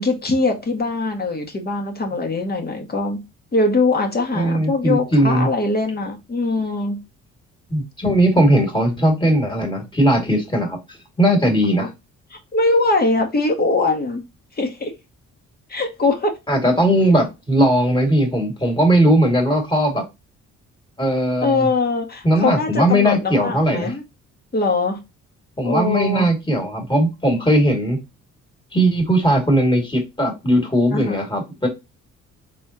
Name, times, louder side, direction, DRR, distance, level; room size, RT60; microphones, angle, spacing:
voice 1, 0.0-3.2 3.5-7.0 11.8-11.9 12.3-14.2 14.6-14.9 15.7-16.3 21.4-24.0 24.5-25.0 25.6-26.3 30.9-31.3, left 3 dB, 30° left, 1.8 m, -21 dB
voice 2, 4.3-5.5 7.7-10.8 11.2-11.9 16.5-20.0 21.0-21.6 22.2-23.9 25.6-28.0 28.7-31.7, right 1 dB, 15° left, 2.4 m, -18 dB
4.2 x 3.8 x 2.9 m
cardioid pair, 90°, 30 cm